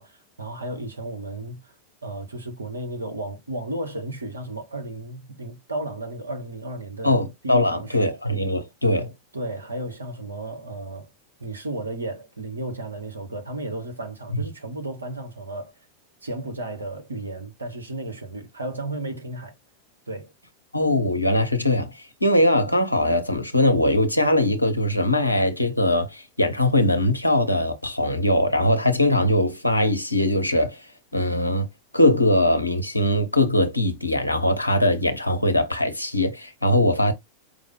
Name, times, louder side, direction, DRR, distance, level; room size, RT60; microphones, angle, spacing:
voice 1, 0.0-1.7 2.0-7.2 7.4-8.1 9.3-11.1 11.4-15.7 16.2-19.5 20.1-20.3, right 2 dB, 80° right, 0.9 m, -33 dB
voice 2, 7.0-9.1 20.7-30.9 31.1-31.7 31.9-37.1, left 1 dB, 85° left, 0.7 m, -21 dB
4.9 x 2.0 x 3.6 m
figure-of-eight pair, 90°, 0 cm